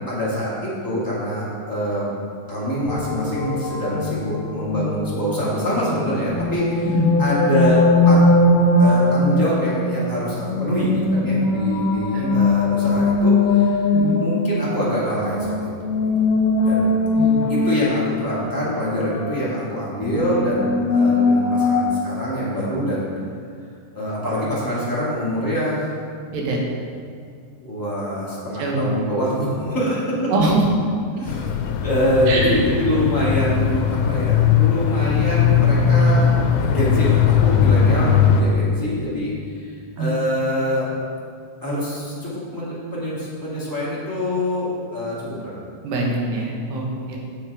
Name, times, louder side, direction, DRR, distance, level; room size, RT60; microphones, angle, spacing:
voice 1, 0.1-2.1 2.5-6.9 7.2-7.8 8.0-8.2 8.8-13.9 14.2-16.0 16.3-16.9 17.5-23.1 23.9-25.9 27.6-30.3 31.1-31.5 31.8-40.9 41.6-45.6 46.9-47.2, equal, 10° left, -9 dB, 1.1 m, -25 dB
sound 1, 2.6-21.8, left 2 dB, 70° left, 2.5 m, -20 dB
voice 2, 6.8-7.1 12.1-12.3 13.9-14.2 17.2-17.5 26.3-26.6 28.6-28.9 30.3-30.6 32.3-32.5 40.0-40.1 45.8-47.2, right 2 dB, 80° right, -1 dB, 3.0 m, -23 dB
sound 2, 31.3-38.4, left 7 dB, 85° left, 2.4 m, -18 dB
8.7 x 6.3 x 4.8 m, 2.3 s
omnidirectional pair, 4.3 m